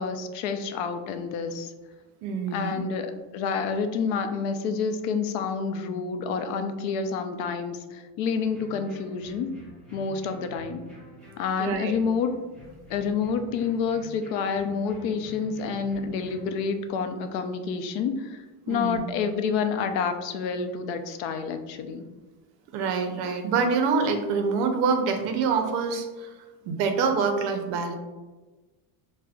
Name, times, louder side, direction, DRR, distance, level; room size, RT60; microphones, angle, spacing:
voice 1, 0.0-1.7 2.5-9.5 9.9-10.8 11.4-12.3 12.9-22.0, left 5 dB, 80° left, 7 dB, 0.5 m, -28 dB
voice 2, 2.2-2.8 11.6-12.0 18.7-19.0 22.7-26.3 26.6-28.0, right 5 dB, 55° right, 5 dB, 0.5 m, -26 dB
sound 1, 8.3-16.5, left 1 dB, ahead, 0.9 m, -48 dB
4.8 x 2.1 x 2.3 m, 1.2 s
cardioid pair, 165°, 48 cm